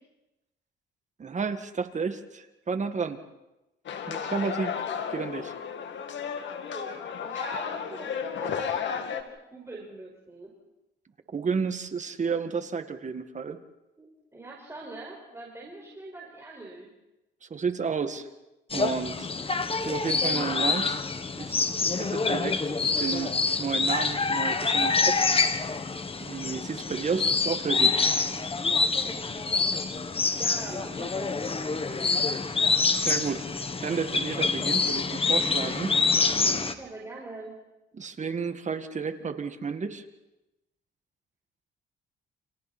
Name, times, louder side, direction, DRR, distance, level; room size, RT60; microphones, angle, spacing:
voice 1, 1.2-3.2 4.1-4.9 5.1-5.5 11.3-13.6 17.4-18.3 18.7-19.3 19.9-21.0 21.4-25.3 26.2-28.0 33.0-35.9 37.9-40.0, right 5 dB, 35° right, 8 dB, 2.0 m, -32 dB
sound 1, 3.9-9.2, left 7 dB, 70° left, 2.3 m, -33 dB
voice 2, 4.6-5.0 6.6-9.2 9.5-10.5 14.0-14.1 14.3-16.9 29.0-29.5 30.3-32.2 36.7-37.6, right 2 dB, 15° right, -3 dB, 5.4 m, -43 dB
sound 2, 18.7-36.7, left 4 dB, 30° left, 1.5 m, -26 dB
30.0 x 27.0 x 4.4 m, 0.96 s
cardioid pair, 90°, 20 cm